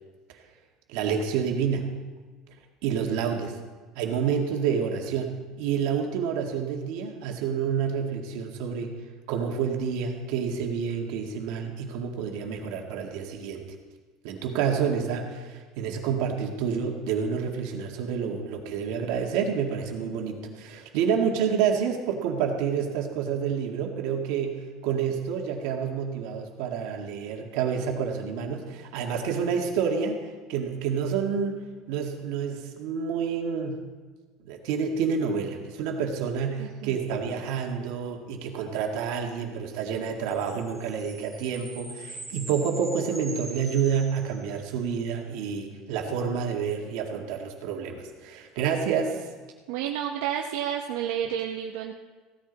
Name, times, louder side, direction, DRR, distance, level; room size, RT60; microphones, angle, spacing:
voice 1, 0.9-1.9 2.8-3.6 4.0-8.9 9.3-13.6 14.2-31.6 31.9-33.9 34.4-49.2, right 7 dB, 65° right, 2 dB, 2.0 m, -28 dB
voice 2, 36.6-37.0 49.7-51.9, right 10 dB, 80° right, 1 dB, 0.9 m, -30 dB
sound 1, 40.3-44.9, right 2 dB, 5° left, 3.0 m, -43 dB
16.0 x 13.5 x 4.1 m, 1.4 s
cardioid pair, 180°, 0 cm